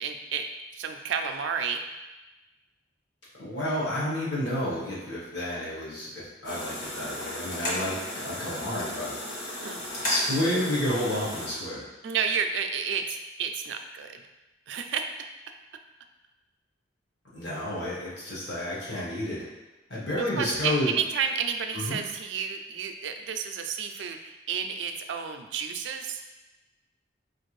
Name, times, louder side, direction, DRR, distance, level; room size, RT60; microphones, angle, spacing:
voice 1, 0.0-1.8 9.6-9.8 12.0-14.2 14.7-15.1 20.1-26.2, right 6 dB, 75° right, 6 dB, 0.3 m, -31 dB
voice 2, 3.4-9.2 10.0-11.9 17.3-19.4 19.9-20.9 21.7-22.0, left 1 dB, 70° left, -7 dB, 1.3 m, -30 dB
sound 1, 6.4-11.5, left 1 dB, 45° left, 1.1 m, -35 dB
4.3 x 2.5 x 3.1 m, 1.1 s
head